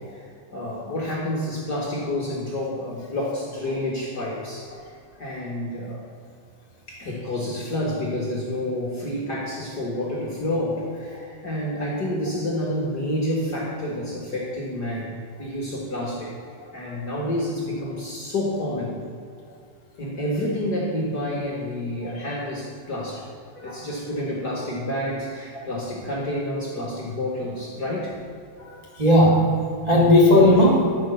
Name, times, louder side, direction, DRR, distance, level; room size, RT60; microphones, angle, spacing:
voice 1, 0.5-4.7 5.2-6.0 6.9-16.3 16.7-18.9 20.0-23.2 23.6-28.1 29.9-30.1, left 1 dB, 45° left, -3 dB, 1.4 m, -29 dB
voice 2, 28.6-31.0, left 1 dB, 50° right, -5 dB, 0.5 m, -18 dB
12.5 x 5.4 x 6.8 m, 2.3 s
omnidirectional pair, 4.2 m